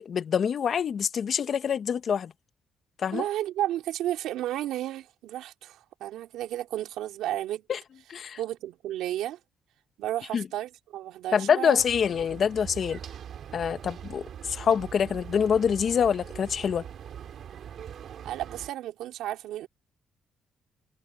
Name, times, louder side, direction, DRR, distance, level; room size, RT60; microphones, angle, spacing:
voice 1, 0.0-2.3 3.0-3.2 7.7-7.8 8.1-8.4 10.3-10.5 11.3-13.0 13.5-16.8, left 7 dB, 55° left, 1.3 m, -26 dB
voice 2, 3.1-7.6 8.4-9.4 10.0-11.8 18.2-19.7, right 13 dB, 90° right, 3.1 m, -32 dB
sound 1, 11.8-18.7, right 9 dB, 65° right, 3.6 m, -42 dB
cardioid pair, 90°, 0 cm